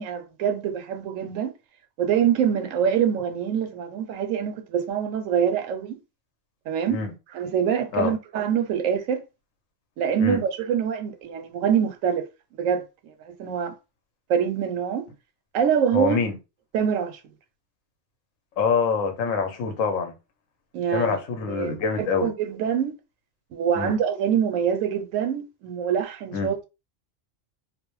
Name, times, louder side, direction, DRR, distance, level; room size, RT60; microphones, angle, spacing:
voice 1, 0.0-1.5 2.0-6.0 6.7-7.0 7.3-9.2 10.0-12.3 12.6-13.7 14.3-15.0 15.5-16.2 16.7-17.2 20.7-21.2 21.5-22.9 23.5-26.7, right 8 dB, 85° right, 1.0 m, -25 dB
voice 2, 15.9-16.4 18.6-20.1 20.9-22.3 23.8-24.0 26.3-26.5, left 5 dB, 85° left, 1.0 m, -25 dB
2.5 x 2.1 x 2.9 m
omnidirectional pair, 1.3 m